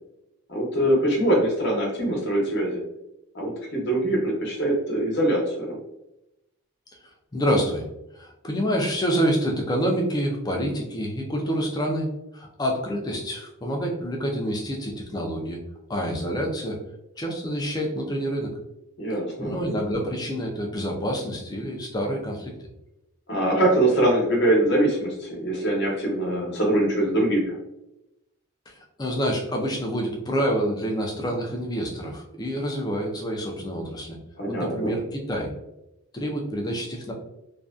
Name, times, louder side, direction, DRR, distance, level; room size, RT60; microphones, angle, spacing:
voice 1, 0.5-2.8 3.3-5.8 19.0-19.5 23.3-27.6 34.4-34.9, right 1 dB, 50° left, -2 dB, 0.8 m, -23 dB
voice 2, 7.0-7.9 8.1-15.6 15.9-16.8 17.2-18.5 19.4-22.5 28.7-34.2 34.5-35.5 36.1-37.1, equal, 20° left, 0 dB, 0.3 m, -27 dB
2.5 x 2.2 x 2.3 m, 0.89 s
head